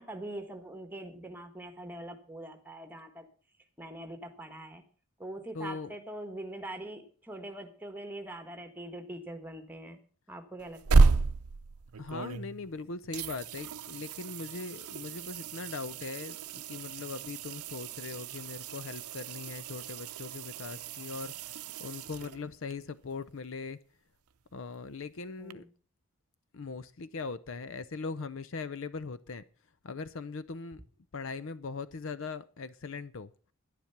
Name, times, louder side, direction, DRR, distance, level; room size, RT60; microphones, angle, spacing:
voice 1, 0.0-3.2 3.8-4.8 5.2-10.0 10.3-11.2 25.4-25.7, right 1 dB, 10° right, 6 dB, 1.6 m, -43 dB
voice 2, 5.5-5.9 12.0-21.5 21.8-23.8 24.5-25.6 26.5-29.4 29.8-30.8 31.1-33.3, left 4 dB, 60° left, 16 dB, 0.6 m, -40 dB
sound 1, 10.6-12.8 13.1-22.7 25.5-25.6, right 4 dB, 85° right, 0.6 m, -31 dB
11.0 x 10.0 x 5.9 m, 0.40 s
head